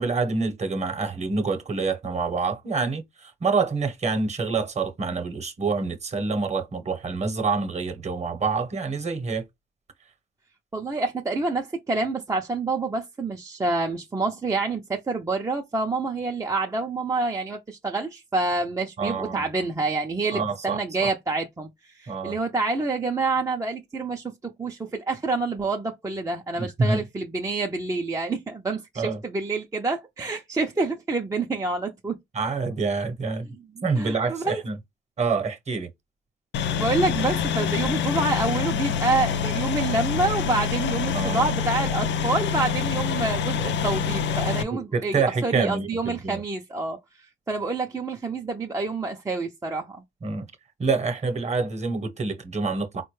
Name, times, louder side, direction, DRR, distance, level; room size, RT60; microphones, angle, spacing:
voice 1, 0.0-9.4 19.0-19.4 20.3-21.1 22.1-22.4 26.6-27.0 29.0-29.2 32.3-33.5 33.8-34.8 35.2-35.9 41.1-41.5 44.5-46.4 50.2-50.5 50.8-53.0, right 4 dB, 35° right, 0.9 m, -27 dB
voice 2, 10.7-32.2 33.8-34.6 36.8-47.0 47.5-50.0, right 3 dB, 15° right, 0.5 m, -27 dB
sound 1, 36.5-44.6, left 7 dB, 65° left, 0.5 m, -26 dB
4.1 x 2.2 x 3.1 m
cardioid pair, 90°, 20 cm